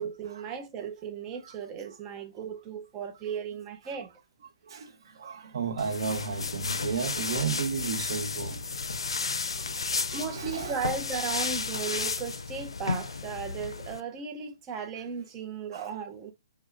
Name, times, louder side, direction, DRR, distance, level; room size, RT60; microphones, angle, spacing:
voice 1, 0.0-4.1 10.1-16.3, right 6 dB, 25° right, 0.7 m, -36 dB
voice 2, 4.6-8.6 9.6-9.7 10.0-10.8 15.7-15.9, right 6 dB, 60° right, 0.7 m, -33 dB
sound 1, 5.8-14.0, left 4 dB, 85° left, 0.4 m, -33 dB
4.8 x 2.2 x 2.4 m
hypercardioid pair, 140°, 3 cm